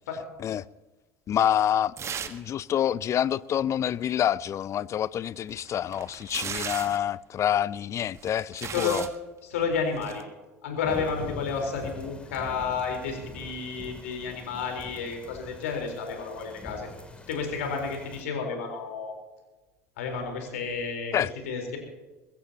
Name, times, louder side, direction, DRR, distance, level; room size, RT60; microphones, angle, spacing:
voice 1, 1.3-1.9 2.2-9.1 21.1-21.3, left 10 dB, 40° left, 0.5 m, -27 dB
sound 1, 2.0-2.5 2.8-2.9 5.3-7.1 8.0-9.2 10.0-10.2, right 7 dB, 40° right, 1.4 m, -36 dB
voice 2, 8.7-9.0 9.4-10.2 10.6-16.9 17.3-19.1 20.0-21.8, left 5 dB, 75° left, 4.1 m, -31 dB
sound 2, 10.8-18.2, left 2 dB, 15° left, 3.0 m, -44 dB
22.0 x 15.5 x 2.9 m
hypercardioid pair, 70°, 8 cm